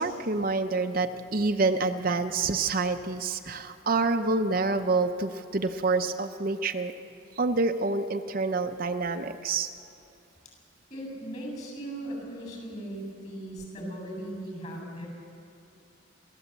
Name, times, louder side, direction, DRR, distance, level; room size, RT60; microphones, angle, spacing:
voice 1, 0.0-6.9 7.4-9.7, right 3 dB, 45° right, 7 dB, 0.6 m, -27 dB
voice 2, 10.9-15.1, right 1 dB, 35° left, 1 dB, 7.5 m, -38 dB
28.5 x 14.0 x 8.1 m, 2.7 s
head